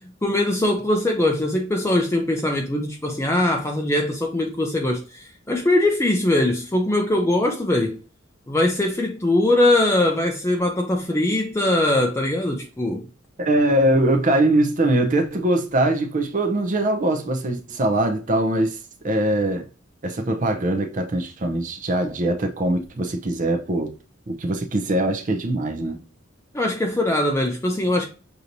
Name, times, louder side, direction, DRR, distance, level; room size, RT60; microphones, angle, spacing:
voice 1, 0.0-8.0 8.5-13.1 26.5-28.1, left 1 dB, 15° left, 0.5 m, -21 dB
voice 2, 13.4-18.8 19.0-19.7 20.0-23.9 24.3-26.0, right 1 dB, 40° right, 0.6 m, -22 dB
6.6 x 3.0 x 2.6 m
head